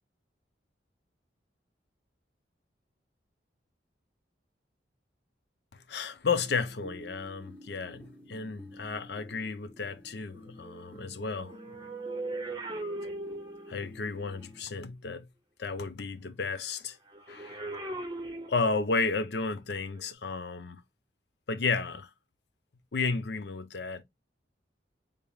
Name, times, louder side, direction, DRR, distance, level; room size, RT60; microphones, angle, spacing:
voice 1, 5.7-11.6 13.7-15.3 15.6-17.0 17.3-17.6 18.5-20.8 21.5-22.1 22.9-24.0, left 4 dB, 65° left, 0.6 m, -33 dB
sound 1, 6.4-14.6, equal, 10° left, 0.9 m, -51 dB
sound 2, 11.2-14.0 17.1-19.1 19.9-20.1, right 2 dB, 25° right, 0.8 m, -39 dB
3.5 x 3.4 x 2.3 m
head